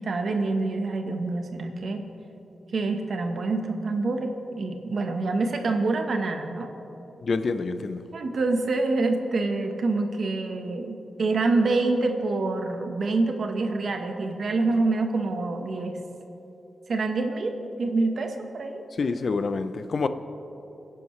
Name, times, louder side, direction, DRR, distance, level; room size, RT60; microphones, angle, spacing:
voice 1, 0.0-2.1 2.7-6.7 8.1-16.0 16.9-18.8, right 3 dB, 60° right, 5 dB, 1.3 m, -26 dB
voice 2, 7.2-8.0 19.0-20.1, left 4 dB, 55° left, 10 dB, 0.6 m, -27 dB
23.5 x 10.5 x 3.3 m, 3.0 s
wide cardioid pair, 105°, 0 cm